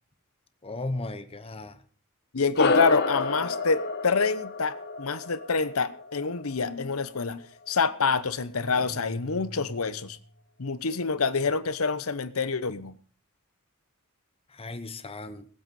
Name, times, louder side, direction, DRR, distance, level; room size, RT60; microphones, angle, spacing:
voice 1, 0.6-1.8 14.5-15.5, left 2 dB, 25° left, 1.1 m, -35 dB
voice 2, 2.3-7.4 7.7-10.2 10.6-13.0, left 4 dB, 75° left, 0.9 m, -27 dB
sound 1, 2.6-7.3, left 3 dB, 50° left, 1.5 m, -29 dB
sound 2, 8.7-10.4, equal, 10° left, 2.7 m, -43 dB
19.0 x 8.0 x 5.5 m
head